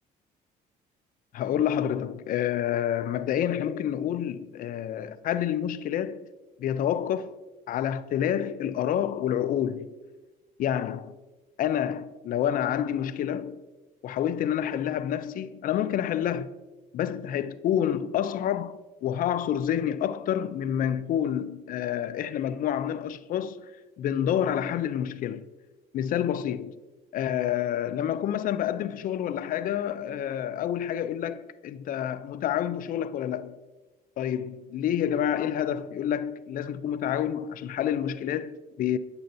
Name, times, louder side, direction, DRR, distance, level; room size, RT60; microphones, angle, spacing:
voice 1, 1.3-6.3 6.6-7.3 7.7-9.9 10.6-11.2 11.6-13.6 14.0-16.5 16.9-25.4 25.9-26.8 27.1-33.5 34.2-39.0, left 10 dB, 55° left, 0.4 m, -28 dB
8.8 x 6.8 x 2.6 m
cardioid pair, 110°, 17 cm